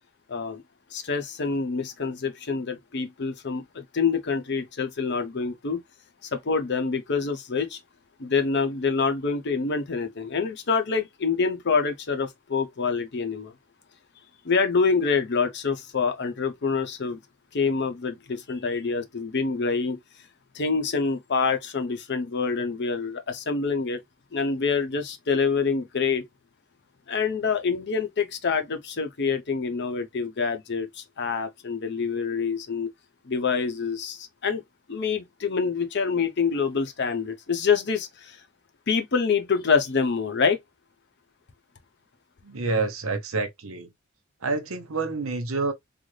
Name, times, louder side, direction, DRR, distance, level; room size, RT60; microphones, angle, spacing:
voice 1, 0.3-0.6 0.9-5.8 6.3-7.8 8.2-13.5 14.4-17.2 17.5-20.0 20.5-24.0 24.3-26.3 27.1-32.9 33.3-34.6 34.9-38.4 38.9-40.6, left 5 dB, 55° left, 0.7 m, -26 dB
voice 2, 42.4-43.9 44.4-45.7, right 3 dB, 75° right, 0.9 m, -28 dB
3.9 x 2.0 x 3.2 m
head